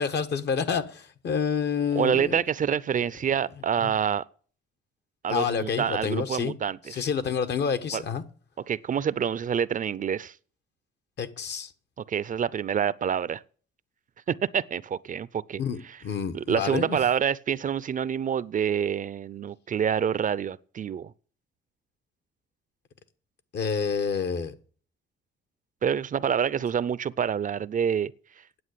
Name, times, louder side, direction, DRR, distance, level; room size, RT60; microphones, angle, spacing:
voice 1, 0.0-2.3 3.8-3.9 5.3-6.5 7.0-8.2 11.2-11.7 15.6-17.0 23.5-24.5, left 6 dB, 60° left, 1.3 m, -28 dB
voice 2, 1.9-4.3 5.2-7.1 7.9-8.0 8.7-10.4 12.0-13.4 14.3-16.0 16.3-21.1 25.8-28.4, right 8 dB, 40° right, 0.5 m, -27 dB
9.5 x 8.1 x 8.2 m
cardioid pair, 90°, 20 cm